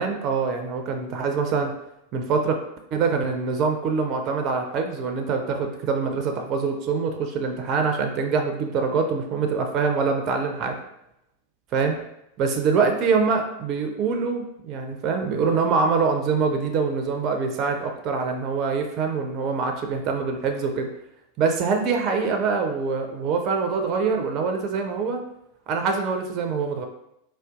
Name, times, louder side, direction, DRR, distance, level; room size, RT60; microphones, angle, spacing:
voice 1, 0.0-1.7 2.1-2.6 2.9-10.8 11.7-12.0 12.4-20.9 21.4-25.2 25.7-26.9, right 5 dB, 35° right, 4 dB, 0.4 m, -24 dB
3.7 x 2.2 x 2.3 m, 0.80 s
figure-of-eight pair, 90°, 0 cm